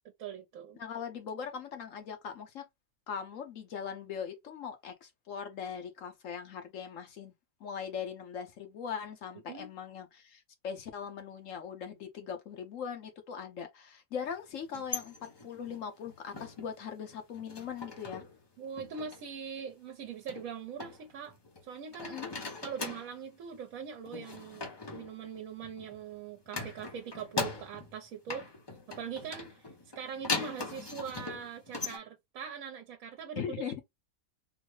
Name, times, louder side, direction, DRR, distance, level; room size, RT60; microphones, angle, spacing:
voice 1, 0.2-0.8 9.5-9.7 18.6-21.4 21.6-22.2 22.6-28.5 29.0-33.4, right 7 dB, 75° right, 1.1 m, -42 dB
voice 2, 0.7-2.6 3.1-7.3 7.6-15.1 15.4-18.2 22.0-22.3 33.4-33.8, left 7 dB, 65° left, 1.1 m, -40 dB
sound 1, 14.6-16.8 17.1-18.4 18.6-19.2 20.3-21.6 21.9-23.2 24.1-26.0 26.5-28.0 28.3-32.0, left 3 dB, 30° left, 0.5 m, -40 dB
3.9 x 2.1 x 3.1 m
omnidirectional pair, 1.5 m